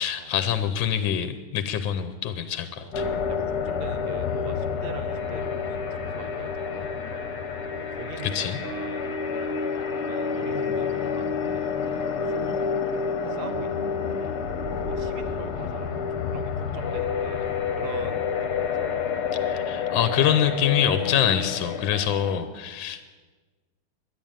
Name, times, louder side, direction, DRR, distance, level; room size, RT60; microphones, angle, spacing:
voice 1, 0.0-3.0 8.2-8.6 19.4-23.1, left 9 dB, 70° left, 10 dB, 1.5 m, -25 dB
sound 1, 2.9-22.4, left 6 dB, 55° left, 1.4 m, -29 dB
voice 2, 3.3-7.0 7.8-14.3 14.9-18.9, right 5 dB, 70° right, 9 dB, 0.5 m, -42 dB
11.5 x 10.5 x 8.8 m, 1.3 s
omnidirectional pair, 2.3 m